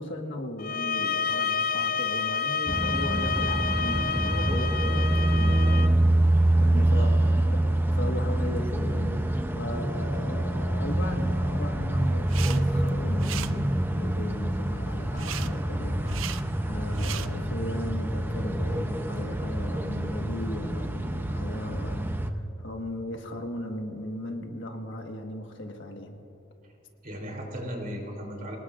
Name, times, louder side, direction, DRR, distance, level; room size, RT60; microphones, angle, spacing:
voice 1, 0.0-5.8 6.6-7.1 7.5-7.6 7.9-26.2, left 1 dB, 65° left, 3 dB, 1.5 m, -37 dB
sound 1, 0.6-5.9, left 6 dB, 45° left, 0.4 m, -29 dB
sound 2, 2.7-22.3, right 1 dB, 10° right, 0.6 m, -26 dB
voice 2, 6.7-7.1 27.0-28.6, equal, 45° right, 0 dB, 3.4 m, -36 dB
sound 3, 12.2-12.6 12.9-13.5 15.2-15.5 16.0-16.4 16.9-17.3, right 12 dB, 75° right, 0.5 m, -37 dB
25.0 x 19.0 x 2.5 m, 2.9 s
head